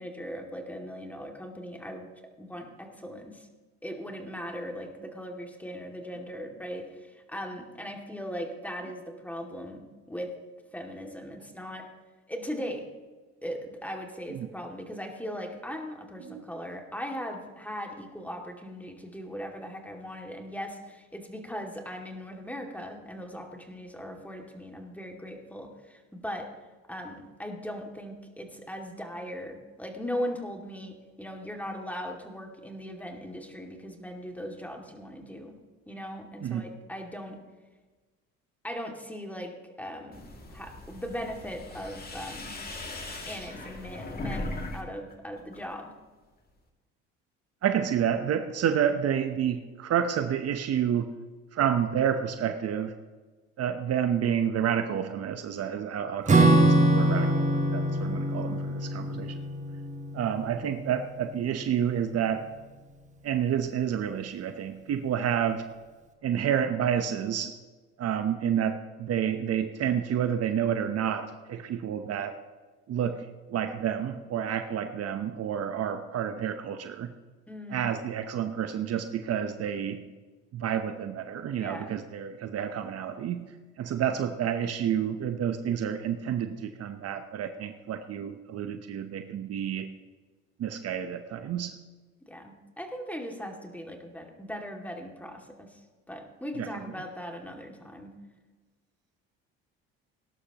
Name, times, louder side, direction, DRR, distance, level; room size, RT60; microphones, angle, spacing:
voice 1, 0.0-2.1 2.4-3.5 3.8-10.3 10.7-11.9 12.3-12.9 13.4-26.5 26.9-35.5 35.9-37.4 38.6-39.5 39.8-40.2 40.5-42.6 43.3-45.9 77.5-77.9 81.6-81.9 92.3-95.7 96.1-98.1, equal, 5° left, 2 dB, 2.3 m, -39 dB
sound 1, 40.1-44.8 45.1-45.7, left 2 dB, 30° left, 2.4 m, -39 dB
voice 2, 47.6-51.1 51.5-52.9 53.6-57.4 57.7-59.4 60.1-62.5 63.2-65.7 66.2-67.5 68.0-72.4 72.9-77.1 77.7-80.0 80.5-83.4 83.8-89.9 90.6-91.7 96.6-96.9, right 9 dB, 50° right, 8 dB, 0.9 m, -29 dB
Acoustic guitar / Strum, 56.3-61.1, right 1 dB, 25° right, 1.7 m, -24 dB
18.5 x 11.5 x 3.0 m, 1.3 s
supercardioid pair, 80°, 31 cm